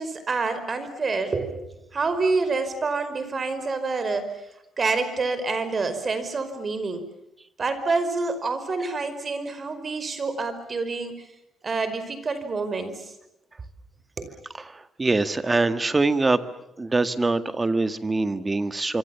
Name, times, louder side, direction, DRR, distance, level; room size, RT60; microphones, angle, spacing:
voice 1, 0.0-4.4 4.8-7.0 7.6-11.1 11.6-13.1 14.2-14.3, right 3 dB, 35° right, 11 dB, 5.1 m, -27 dB
voice 2, 14.6-16.4 16.8-19.0, right 3 dB, 20° right, 11 dB, 1.9 m, -24 dB
26.5 x 25.0 x 7.1 m, 0.86 s
cardioid pair, 90°, 0 cm